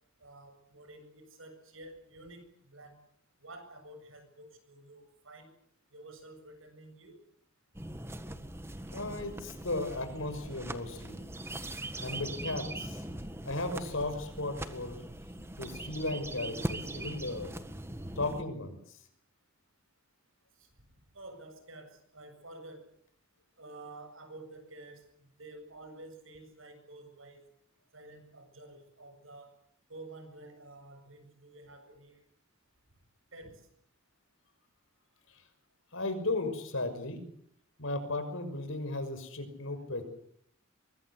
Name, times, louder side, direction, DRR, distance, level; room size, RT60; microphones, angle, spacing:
voice 1, 0.2-3.0 3.4-5.5 5.9-7.2 15.3-15.5 20.6-20.7 21.1-22.8 23.6-27.4 27.9-29.5 29.9-32.2 33.3-33.6, right 2 dB, 70° right, 8 dB, 7.6 m, -50 dB
sound 1, 7.7-18.4, right 1 dB, 10° right, 1.7 m, -41 dB
voice 2, 8.9-11.2 12.0-13.0 13.4-15.0 15.6-17.5 18.2-18.8 35.9-37.2 37.8-40.0, left 2 dB, 70° left, 8 dB, 6.1 m, -35 dB
24.0 x 22.0 x 8.1 m, 0.67 s
head